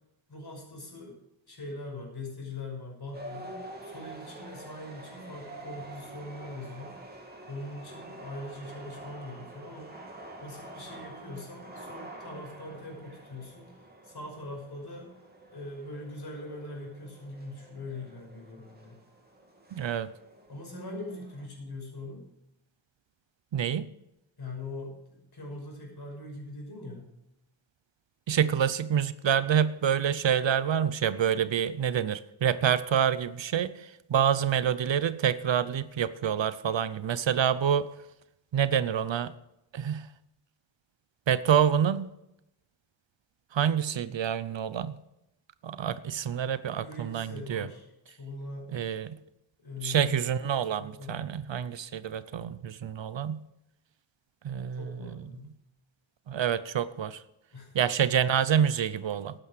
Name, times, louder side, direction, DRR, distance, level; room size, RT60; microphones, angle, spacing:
voice 1, 0.3-1.2 1.5-7.0 7.5-10.0 10.4-13.8 14.0-15.1 15.5-19.0 20.5-22.3 24.4-27.1 46.8-48.7 49.6-51.3 54.8-55.5 57.5-58.0 58.3-58.4, left 2 dB, 50° left, 0 dB, 5.8 m, -42 dB
sound 1, 3.1-21.4, right 1 dB, 20° right, 2.6 m, -47 dB
voice 2, 19.7-20.1 23.5-23.9 28.3-33.7 34.1-37.9 38.5-39.3 39.7-40.0 41.3-42.1 43.5-44.9 45.6-47.7 48.7-49.2 49.8-53.4 54.4-55.1 56.3-57.2 57.7-59.3, right 8 dB, 70° right, 15 dB, 0.8 m, -27 dB
12.5 x 9.1 x 6.5 m, 0.85 s
wide cardioid pair, 100°, 47 cm